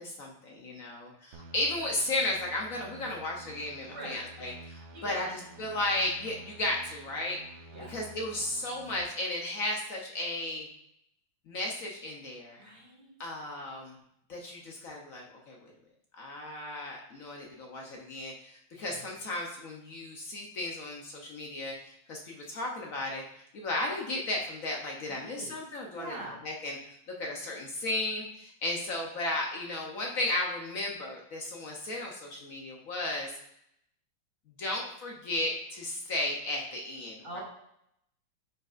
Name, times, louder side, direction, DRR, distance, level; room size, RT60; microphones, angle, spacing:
voice 1, 0.0-7.4 7.9-10.7 11.5-12.6 13.2-14.0 14.3-15.7 16.2-23.2 23.5-26.1 26.4-26.8 27.2-33.3 34.6-37.4, left 2 dB, 55° left, -1 dB, 1.0 m, -34 dB
sound 1, 1.3-9.0, right 4 dB, 90° right, 1.6 m, -50 dB
voice 2, 4.9-5.3 7.7-7.9 12.6-13.3 18.7-19.1 25.1-25.6 25.9-26.4 37.2-37.4, right 2 dB, 65° right, -6 dB, 2.8 m, -44 dB
9.2 x 5.1 x 2.5 m, 0.76 s
omnidirectional pair, 2.0 m